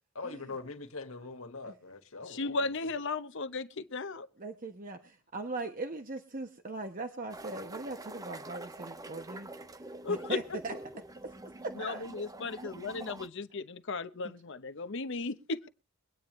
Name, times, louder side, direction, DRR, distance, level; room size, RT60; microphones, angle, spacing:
voice 1, 0.2-2.7, left 3 dB, 80° left, 1.7 m, -42 dB
voice 2, 2.2-4.3 10.0-10.4 11.7-15.7, left 3 dB, 60° left, 0.9 m, -35 dB
voice 3, 4.4-9.5 10.1-10.7 11.6-12.1 12.6-12.7 14.2-14.3, right 3 dB, 40° right, 1.1 m, -39 dB
sound 1, 7.3-13.3, right 2 dB, 15° right, 0.6 m, -46 dB
23.0 x 9.3 x 3.2 m
head